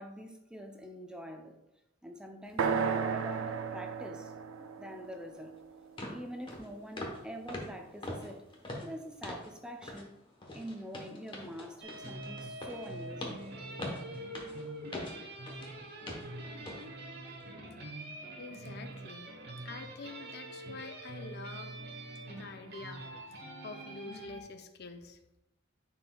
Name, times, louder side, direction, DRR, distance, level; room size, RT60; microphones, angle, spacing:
voice 1, 0.0-1.6 2.0-4.3 4.6-5.5 6.1-8.4 8.8-10.2 10.5-13.5 14.5-14.7, equal, 5° right, 3 dB, 0.5 m, -45 dB
sound 1, 2.6-6.5, right 6 dB, 85° right, 0.5 m, -35 dB
sound 2, 5.4-5.5 6.0-6.2 6.5-6.7 7.0-7.2 7.5-9.5 9.8-10.1 10.4-15.7 16.1-16.3 16.7-16.8 17.3-17.4, left 1 dB, 25° left, 1.0 m, -42 dB
sound 3, 11.8-24.4, right 2 dB, 55° right, 1.0 m, -45 dB
voice 2, 18.4-19.3 19.6-21.7 22.2-23.0 23.3-25.2, left 4 dB, 55° left, 6 dB, 0.6 m, -46 dB
9.8 x 4.3 x 2.3 m, 0.88 s
head